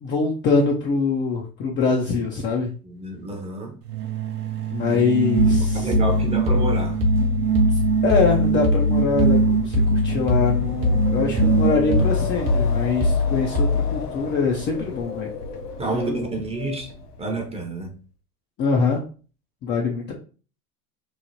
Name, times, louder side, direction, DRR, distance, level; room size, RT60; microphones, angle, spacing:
voice 1, 0.0-2.7 4.7-5.9 7.7-15.3 15.9-16.3 18.6-19.0 19.6-20.1, left 4 dB, 25° left, 0.4 m, -23 dB
voice 2, 2.8-3.7 4.9-5.0 5.7-7.0 15.8-16.9 17.2-17.9, right 2 dB, 15° right, 0.6 m, -29 dB
sound 1, 3.8-12.4, right 9 dB, 80° right, 0.6 m, -24 dB
sound 2, 5.4-14.1, left 3 dB, 60° right, 1.0 m, -22 dB
Wind, 7.5-17.5, left 4 dB, 85° left, 0.7 m, -35 dB
3.1 x 2.0 x 2.6 m
hypercardioid pair, 90°, 45 cm